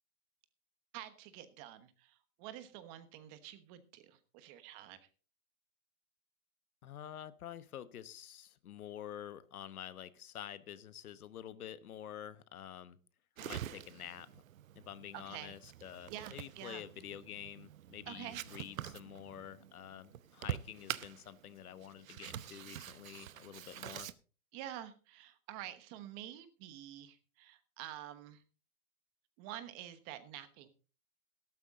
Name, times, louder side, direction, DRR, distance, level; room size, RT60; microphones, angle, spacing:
voice 1, 0.9-5.0 15.1-15.6 16.1-16.8 18.1-18.4 24.5-28.4 29.4-30.7, right 12 dB, 25° right, 12 dB, 1.2 m, -48 dB
voice 2, 6.8-13.0 13.4-14.4 14.7-24.1, left 10 dB, 75° left, 15 dB, 1.2 m, -48 dB
sound 1, 13.4-24.1, right 11 dB, 65° right, 0.9 m, -46 dB
13.0 x 12.5 x 3.7 m, 0.36 s
hypercardioid pair, 150°, 44 cm